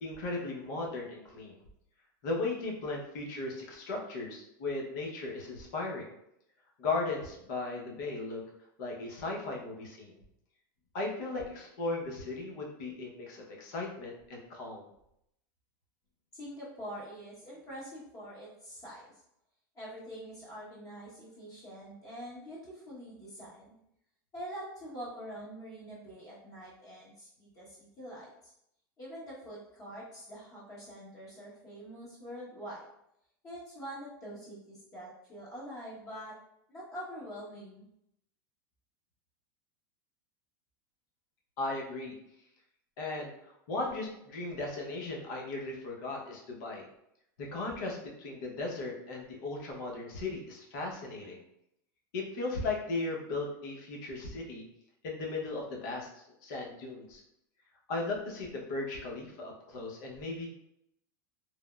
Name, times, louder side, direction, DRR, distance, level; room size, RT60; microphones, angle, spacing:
voice 1, 0.0-1.6 2.2-6.1 6.8-8.4 8.8-10.2 10.9-14.8 41.6-42.1 43.0-46.8 47.4-51.4 52.1-54.6 55.0-57.2 57.9-60.5, left 3 dB, 65° left, -1 dB, 0.8 m, -37 dB
voice 2, 16.3-19.0 19.7-23.7 24.3-28.3 29.0-32.8 33.4-36.3 36.7-37.9, equal, 30° left, -8 dB, 1.0 m, -45 dB
3.4 x 2.0 x 2.3 m, 0.78 s
supercardioid pair, 120°, 11 cm